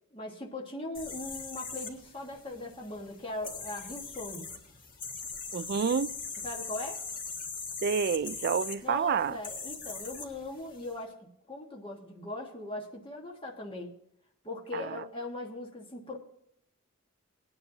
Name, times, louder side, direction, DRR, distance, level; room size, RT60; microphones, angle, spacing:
voice 1, 0.1-4.5 6.4-7.0 8.8-13.9 14.4-16.2, left 2 dB, 25° left, 1.5 m, -39 dB
sound 1, 0.9-10.9, left 4 dB, 40° left, 1.7 m, -41 dB
voice 2, 5.5-6.2 7.8-9.4 14.7-15.0, right 6 dB, 50° right, 0.3 m, -29 dB
19.5 x 9.8 x 2.7 m
head